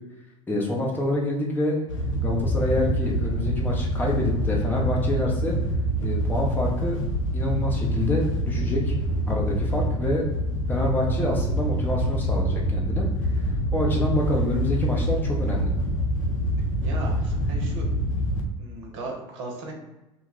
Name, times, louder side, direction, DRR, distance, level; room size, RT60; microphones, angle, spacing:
voice 1, 0.5-1.8 2.2-5.5 6.0-7.0 7.3-9.0 9.3-10.2 10.7-13.1 13.7-15.7, left 1 dB, 10° left, -2 dB, 0.7 m, -27 dB
Wind / Boat Water vehicle, 1.9-18.4, equal, 70° left, 0.5 m, -25 dB
voice 2, 16.8-17.9 18.6-19.7, right 3 dB, 60° right, 0 dB, 0.7 m, -37 dB
2.2 x 2.1 x 3.6 m, 0.99 s
figure-of-eight pair, 75°, 17 cm